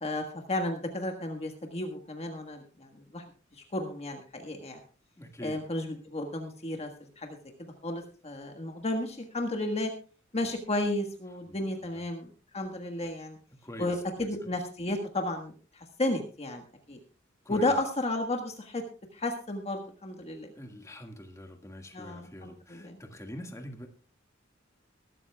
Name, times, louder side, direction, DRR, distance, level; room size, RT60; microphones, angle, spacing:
voice 1, 0.0-3.2 3.5-4.8 5.4-7.4 7.8-9.9 10.3-13.4 13.8-17.0 17.5-18.8 19.1-20.5 21.9-23.0, left 1 dB, 30° left, 4 dB, 1.5 m, -33 dB
voice 2, 5.2-5.6 11.5-12.0 13.6-14.5 17.5-17.7 20.5-23.9, equal, 15° left, 3 dB, 1.8 m, -45 dB
21.5 x 12.5 x 2.3 m, 0.38 s
head